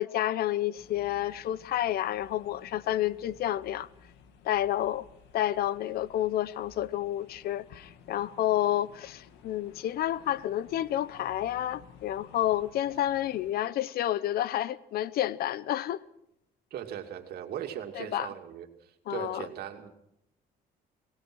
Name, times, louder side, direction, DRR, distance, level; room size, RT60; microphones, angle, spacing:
voice 1, 0.0-3.9 4.4-5.0 5.3-16.0 17.9-18.3 19.1-19.5, left 12 dB, 65° left, 0.8 m, -30 dB
sound 1, 0.7-13.6, left 7 dB, 90° left, 2.1 m, -55 dB
voice 2, 16.7-18.7 19.1-19.9, right 10 dB, 70° right, 2.6 m, -38 dB
23.5 x 19.0 x 6.3 m
cardioid pair, 110°, 17 cm